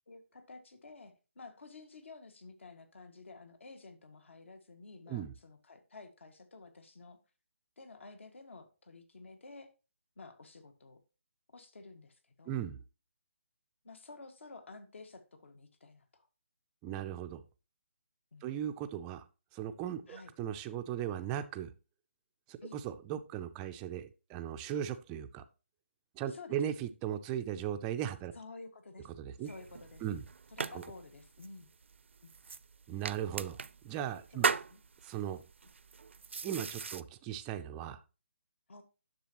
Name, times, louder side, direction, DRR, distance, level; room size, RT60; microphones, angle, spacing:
voice 1, 0.1-7.2 7.8-9.7 10.2-11.0 11.5-12.6 13.8-16.3 18.3-18.5 20.1-20.3 22.6-22.8 26.3-26.6 28.3-29.1 29.4-30.1 30.5-31.7 32.2-32.3 34.3-34.8 38.7-38.8, left 3 dB, 65° left, 8 dB, 1.8 m, -52 dB
voice 2, 12.5-12.8 16.8-17.4 18.4-19.2 19.5-21.7 22.5-25.4 26.2-28.3 29.2-29.5 30.0-30.2 30.7-30.8 32.9-33.6 33.8-34.5 35.0-35.4 36.4-38.0, right 10 dB, 10° right, 8 dB, 0.4 m, -37 dB
sound 1, 29.4-37.0, right 5 dB, 65° right, 0.5 m, -39 dB
10.0 x 6.7 x 3.0 m, 0.32 s
hypercardioid pair, 165°, 7 cm